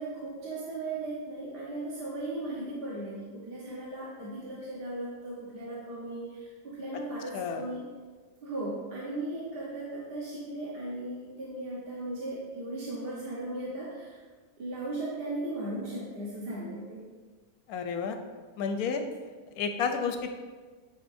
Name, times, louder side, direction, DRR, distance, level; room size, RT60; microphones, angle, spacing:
voice 1, 0.0-7.8 8.4-14.2 14.6-17.0, right 2 dB, 40° right, -7 dB, 1.1 m, -37 dB
voice 2, 17.7-18.2 18.6-19.0 19.6-20.3, left 6 dB, 70° left, 6 dB, 1.0 m, -30 dB
9.0 x 4.5 x 2.6 m, 1.4 s
omnidirectional pair, 1.8 m